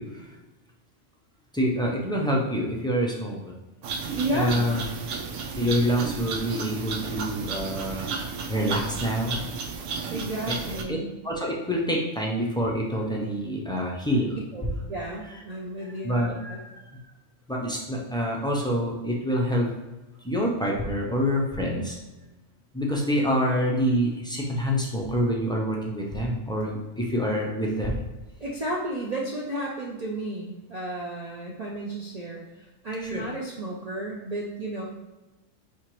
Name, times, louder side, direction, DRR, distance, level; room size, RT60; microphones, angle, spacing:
voice 1, 1.5-3.5 4.3-4.8 5.5-8.1 8.5-9.4 10.5-11.0 11.2-14.4 16.0-17.0 17.5-19.7 20.2-22.0 22.7-28.0 33.0-33.2, equal, 5° left, -3 dB, 0.4 m, -26 dB
sound 1, 3.8-10.8, right 5 dB, 85° right, 1.0 m, -33 dB
voice 2, 4.2-4.7 10.1-11.1 14.5-16.2 16.5-16.6 28.4-34.8, right 1 dB, 45° right, -3 dB, 0.5 m, -32 dB
5.7 x 2.9 x 3.0 m, 1.1 s
omnidirectional pair, 1.3 m